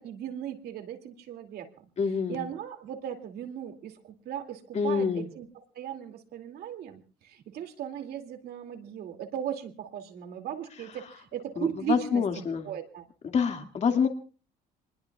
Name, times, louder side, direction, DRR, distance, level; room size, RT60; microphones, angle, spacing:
voice 1, 0.0-1.8 2.3-12.2 12.6-13.1, right 10 dB, 70° right, 5 dB, 2.5 m, -37 dB
voice 2, 2.0-2.5 4.7-5.3 11.6-12.7 13.3-14.1, left 6 dB, 40° left, 5 dB, 2.1 m, -26 dB
27.5 x 21.0 x 2.4 m, 0.38 s
cardioid pair, 110°, 17 cm